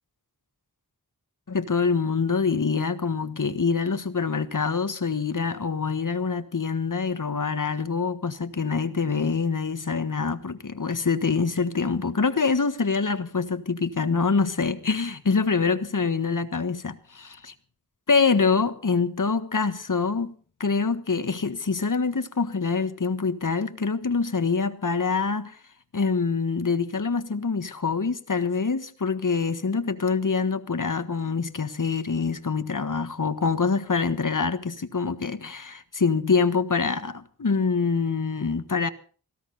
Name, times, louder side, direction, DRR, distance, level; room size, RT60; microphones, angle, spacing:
voice 1, 1.5-17.5 18.1-20.3 20.6-25.6 25.9-38.9, left 5 dB, 55° left, 1.5 m, -25 dB
19.0 x 16.0 x 4.1 m
wide cardioid pair, 55°, 38 cm